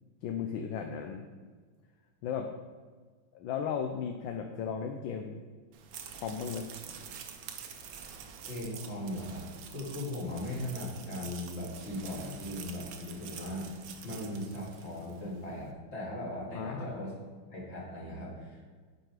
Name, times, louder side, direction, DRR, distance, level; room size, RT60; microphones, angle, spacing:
voice 1, 0.2-1.2 2.2-2.5 3.3-5.4 6.1-6.7 16.5-17.0, left 7 dB, 75° left, 4 dB, 1.2 m, -35 dB
sound 1, 5.7-15.3, right 7 dB, 70° right, 1.4 m, -47 dB
voice 2, 8.4-13.7 14.0-17.2 17.5-18.7, left 1 dB, 30° left, -5 dB, 2.3 m, -38 dB
9.0 x 5.5 x 4.8 m, 1.5 s
omnidirectional pair, 2.4 m